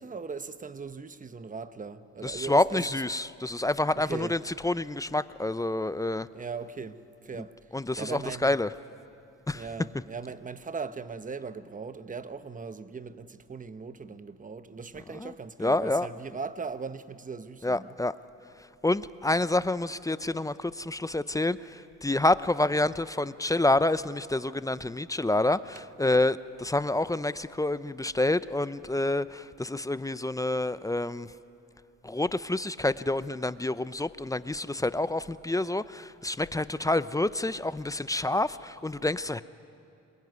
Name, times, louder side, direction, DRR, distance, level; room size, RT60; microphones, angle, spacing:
voice 1, 0.0-3.0 4.0-4.4 6.3-7.7 8.0-8.6 9.5-18.0, right 5 dB, 25° right, 1.1 m, -39 dB
voice 2, 2.2-6.3 7.7-8.7 9.5-9.6 15.2-15.3 15.6-16.1 17.6-18.1 18.8-31.3 32.0-39.4, left 2 dB, 10° left, 0.6 m, -28 dB
27.0 x 21.5 x 9.5 m
cardioid pair, 90°, 30 cm